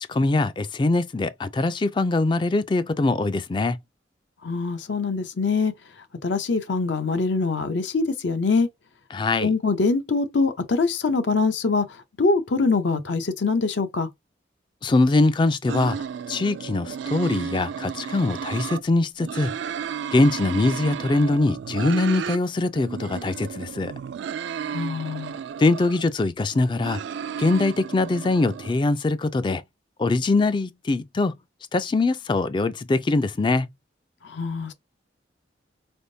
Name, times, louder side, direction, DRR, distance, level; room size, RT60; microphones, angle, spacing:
voice 1, 0.1-3.8 9.1-9.5 14.8-16.0 16.3-19.5 20.1-23.9 25.6-27.0 27.4-29.6 30.0-31.3 31.7-33.7, left 2 dB, 25° left, 0.3 m, -22 dB
voice 2, 4.4-5.7 6.2-8.7 9.4-14.1 24.6-25.4 34.2-34.7, left 4 dB, 75° left, 0.6 m, -24 dB
sound 1, 15.7-18.8 19.2-22.4 22.7-26.0 26.5-28.7, right 7 dB, 75° right, 0.3 m, -33 dB
4.3 x 3.5 x 2.7 m
head